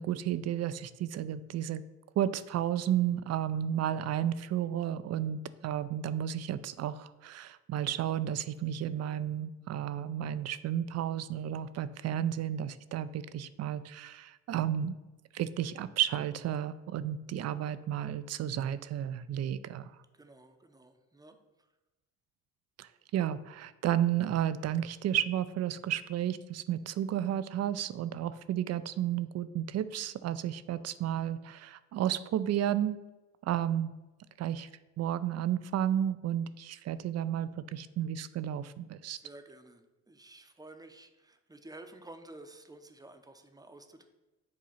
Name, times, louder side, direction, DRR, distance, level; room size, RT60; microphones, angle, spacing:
voice 1, 0.0-1.8 2.2-14.9 15.3-19.9 22.8-33.0 33.4-33.9 34.4-34.7 35.0-39.2, right 10 dB, 60° right, 15 dB, 0.4 m, -32 dB
voice 2, 20.1-21.7 39.0-44.0, right 2 dB, 15° right, 7 dB, 0.6 m, -52 dB
7.6 x 2.8 x 5.6 m, 1.1 s
cardioid pair, 90°, 30 cm